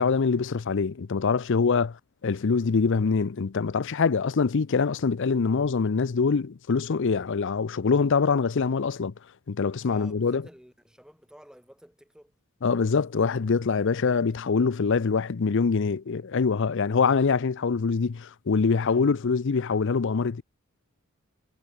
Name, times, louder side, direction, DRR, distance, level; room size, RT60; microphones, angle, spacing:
voice 1, 0.0-2.0 2.2-9.1 9.5-10.4 12.6-20.4, left 5 dB, 60° left, 0.5 m, -24 dB
voice 2, 9.8-12.3 18.8-19.2, equal, 5° right, 6.2 m, -52 dB
head